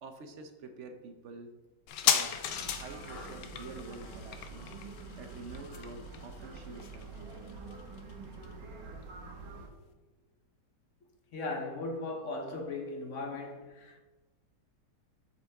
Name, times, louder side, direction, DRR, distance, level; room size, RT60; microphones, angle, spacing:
voice 1, 0.0-1.6 2.0-4.7 5.2-7.4, right 3 dB, 55° right, 1.0 m, -48 dB
sound 1, 1.9-9.0 9.2-9.3, left 9 dB, 85° left, 1.3 m, -36 dB
sound 2, 2.5-9.7, right 3 dB, 90° right, 1.8 m, -46 dB
voice 2, 11.3-14.0, left 2 dB, 50° left, 1.3 m, -38 dB
8.0 x 6.3 x 3.5 m
omnidirectional pair, 1.8 m